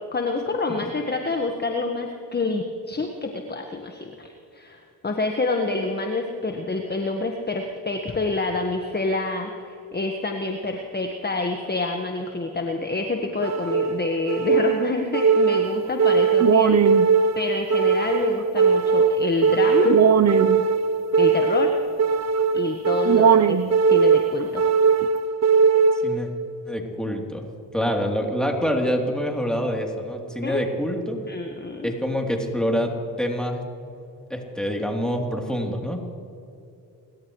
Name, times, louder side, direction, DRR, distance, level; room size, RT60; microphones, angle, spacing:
voice 1, 0.1-16.7 17.3-20.0 21.2-21.7 22.5-23.6 23.9-24.6 30.4-30.6 31.3-32.0, left 3 dB, 20° left, 4 dB, 1.5 m, -27 dB
sound 1, 13.4-26.4, right 5 dB, 35° right, 0.8 m, -19 dB
voice 2, 25.9-26.3 26.7-27.4 27.7-31.2 31.8-33.6 34.3-36.0, equal, ahead, 1 dB, 3.3 m, -26 dB
29.0 x 13.0 x 3.2 m, 2.7 s
supercardioid pair, 60°, 46 cm